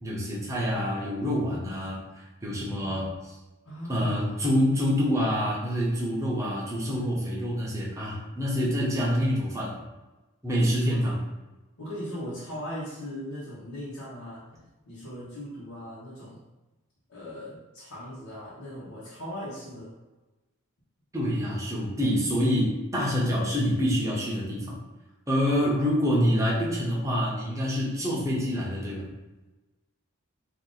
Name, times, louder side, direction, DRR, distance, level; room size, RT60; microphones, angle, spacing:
voice 1, 0.0-2.0 2.4-3.4 3.9-9.7 10.4-11.2 21.1-24.8 25.3-29.1, equal, 15° right, -4 dB, 0.7 m, -26 dB
voice 2, 3.6-4.3 10.5-11.0 11.8-14.5 14.8-16.4 17.1-19.9 25.4-25.9, equal, 85° left, -11 dB, 1.2 m, -39 dB
2.8 x 2.6 x 3.8 m, 1.1 s
head